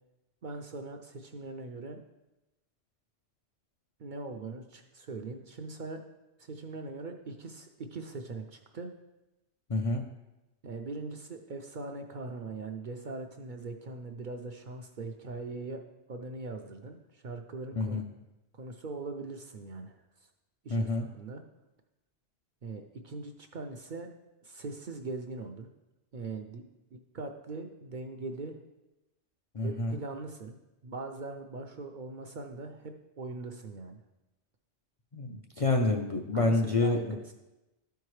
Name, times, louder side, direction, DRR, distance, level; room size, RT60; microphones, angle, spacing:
voice 1, 0.4-2.0 4.0-6.0 6.4-8.9 10.6-15.8 16.1-18.0 18.6-20.0 20.6-21.4 22.6-24.1 24.4-25.7 26.1-26.6 26.9-28.6 29.6-30.6 30.8-34.0 36.3-37.3, right 3 dB, 55° right, 4 dB, 0.6 m, -41 dB
voice 2, 9.7-10.0 17.8-18.0 20.7-21.1 29.5-30.0 35.1-37.0, left 2 dB, 45° left, 1 dB, 0.4 m, -28 dB
12.5 x 4.6 x 3.2 m, 1.0 s
omnidirectional pair, 1.2 m